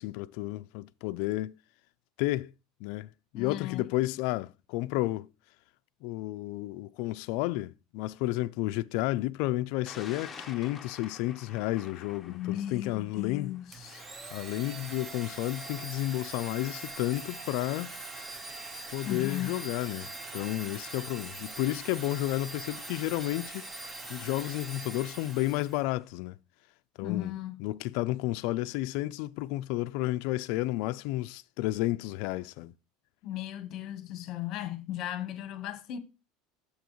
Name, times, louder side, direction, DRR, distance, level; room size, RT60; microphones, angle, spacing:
voice 1, 0.0-1.5 2.2-2.5 2.8-5.3 6.0-13.5 14.3-18.0 18.9-20.1 20.3-23.6 24.1-26.3 27.0-27.3 27.6-32.7, left 17 dB, 60° left, 0.3 m, -32 dB
voice 2, 3.3-3.9 12.3-14.0 19.0-19.6 27.0-27.6 33.2-36.0, left 12 dB, 40° left, 1.0 m, -36 dB
Thunder, 9.9-26.1, left 5 dB, 15° left, 0.9 m, -54 dB
Domestic sounds home sounds, 13.7-25.8, right 2 dB, 20° right, 0.8 m, -42 dB
9.2 x 7.0 x 3.0 m
supercardioid pair, 155°, 0 cm